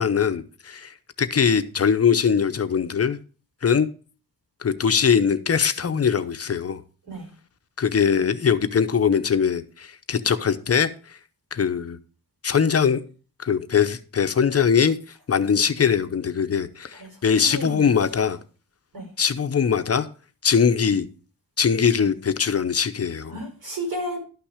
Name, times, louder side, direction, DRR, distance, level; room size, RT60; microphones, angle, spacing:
voice 1, 0.0-3.2 3.6-3.9 4.6-6.8 7.8-10.9 11.5-12.0 12.4-13.0 13.4-15.0 15.3-18.4 19.2-20.1 20.4-21.1 21.6-23.3, left 7 dB, 40° left, 0.7 m, -21 dB
voice 2, 16.9-17.9 18.9-19.1 23.3-24.2, right 1 dB, 90° right, 4.9 m, -33 dB
12.0 x 5.9 x 5.0 m
wide cardioid pair, 150°, 36 cm